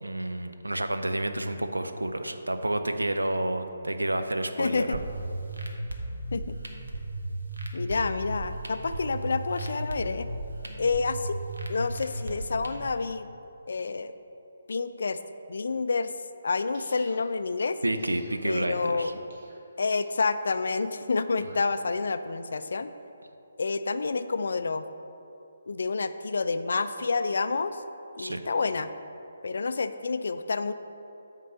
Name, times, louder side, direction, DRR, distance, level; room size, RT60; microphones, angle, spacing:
voice 1, 0.0-5.0 17.8-19.1 28.2-28.4, right 1 dB, 90° right, 8 dB, 0.5 m, -29 dB
voice 2, 4.6-5.0 6.3-6.6 7.7-10.3 10.8-11.4 11.7-13.3 13.7-14.1 14.7-15.2 15.5-16.1 16.4-17.8 18.4-19.2 19.8-22.9 23.6-24.8 25.7-27.8 28.2-28.9 29.4-30.7, left 4 dB, 65° left, 11 dB, 0.4 m, -28 dB
sound 1, 4.9-12.9, right 1 dB, 70° right, 1.0 m, -35 dB
sound 2, 16.7-17.3 17.9-18.4 19.3-19.6 20.0-20.4 21.3-21.8, right 2 dB, 50° right, 1.6 m, -54 dB
8.5 x 3.7 x 6.7 m, 2.9 s
figure-of-eight pair, 145°, 0 cm